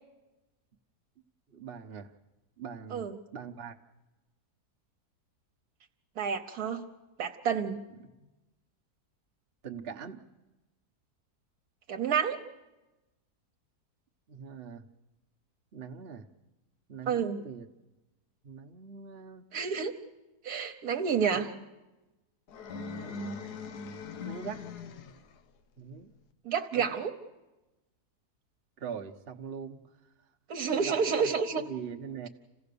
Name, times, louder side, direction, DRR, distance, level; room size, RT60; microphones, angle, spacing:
voice 1, 1.5-2.1 2.6-3.1 3.3-3.7 8.0-8.3 9.6-10.2 14.3-14.8 15.7-16.2 16.9-17.7 18.4-19.5 21.3-21.6 22.8-23.5 24.2-24.6 25.8-26.1 26.7-27.0 28.8-29.8 30.7-32.3, right 6 dB, 45° right, 2 dB, 1.0 m, -42 dB
voice 2, 6.2-6.9 7.2-7.8 11.9-12.4 17.1-17.4 19.5-19.9 20.4-21.5 26.4-27.1 30.5-31.6, right 6 dB, 70° right, 5 dB, 1.4 m, -29 dB
sound 1, 22.5-25.4, left 3 dB, 75° left, 1.5 m, -40 dB
28.0 x 16.0 x 6.8 m, 1.1 s
omnidirectional pair, 1.7 m